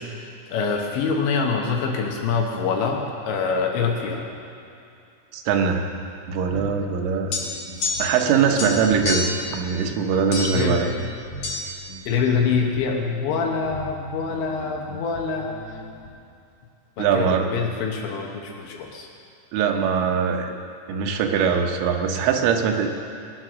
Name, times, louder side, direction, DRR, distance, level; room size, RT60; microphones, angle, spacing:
voice 1, 0.0-4.2 10.5-10.9 12.1-15.6 17.0-19.1, left 5 dB, 70° left, 1 dB, 3.3 m, -25 dB
voice 2, 5.3-5.9 6.3-7.3 8.0-10.9 17.0-17.5 19.5-20.6 20.9-22.9, right 6 dB, 80° right, 4 dB, 3.5 m, -22 dB
sound 1, 6.5-16.1, equal, 25° left, 1.2 m, -40 dB
sound 2, 7.3-8.3 8.6-9.5 10.3-10.7 11.4-11.6, left 3 dB, 45° left, 2.4 m, -28 dB
21.0 x 9.5 x 6.3 m, 2.6 s
omnidirectional pair, 5.8 m